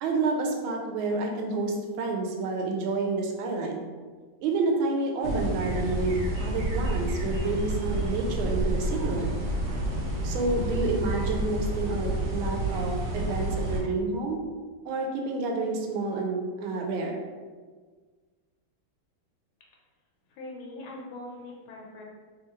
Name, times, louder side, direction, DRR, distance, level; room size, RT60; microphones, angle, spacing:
voice 1, 0.0-3.8 4.4-9.3 10.2-14.4 14.8-17.2, right 3 dB, 85° right, 2 dB, 1.4 m, -29 dB
sound 1, 5.2-13.8, right 1 dB, 65° right, 1.1 m, -29 dB
voice 2, 20.3-22.0, left 2 dB, 85° left, -2 dB, 1.6 m, -42 dB
3.6 x 3.0 x 3.0 m, 1.5 s
omnidirectional pair, 2.2 m